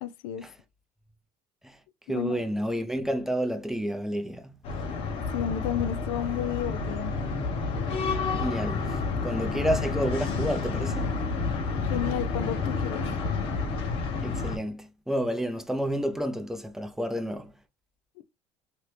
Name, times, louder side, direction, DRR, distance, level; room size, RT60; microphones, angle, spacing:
voice 1, 0.0-0.5 2.1-2.4 5.3-7.1 11.8-13.1 18.2-18.3, left 11 dB, 85° left, 0.4 m, -32 dB
voice 2, 2.1-4.6 8.3-9.0 9.2-11.1 14.2-17.5, equal, 5° right, 0.5 m, -30 dB
sound 1, 4.6-14.6, left 4 dB, 55° left, 0.9 m, -30 dB
2.9 x 2.4 x 3.2 m
cardioid pair, 115°, 11 cm